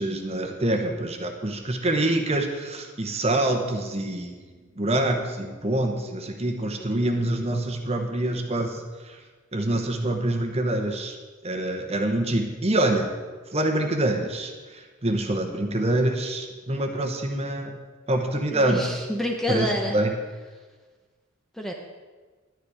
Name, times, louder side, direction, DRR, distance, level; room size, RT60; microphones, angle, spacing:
voice 1, 0.0-4.4 4.8-9.2 9.5-11.2 11.4-13.2 13.5-17.8 18.1-18.8 19.5-20.2, right 1 dB, 30° right, 4 dB, 1.0 m, -26 dB
voice 2, 18.5-19.9 21.6-21.7, equal, ahead, 1 dB, 0.8 m, -27 dB
11.0 x 9.9 x 5.0 m, 1.4 s
head